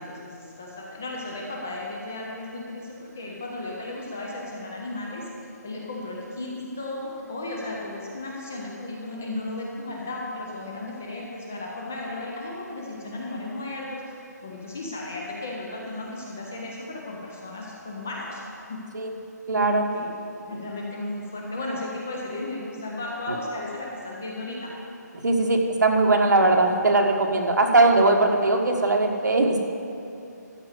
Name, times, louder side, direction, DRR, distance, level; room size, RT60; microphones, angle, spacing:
voice 1, 0.0-5.2 5.6-18.4 18.7-18.8 19.9-20.1 20.5-24.7, left 2 dB, 10° left, -2 dB, 0.3 m, -35 dB
voice 2, 19.5-19.9 25.2-29.6, right 2 dB, 80° right, 2 dB, 1.5 m, -20 dB
13.5 x 5.3 x 8.1 m, 2.6 s
hypercardioid pair, 180°, 10 cm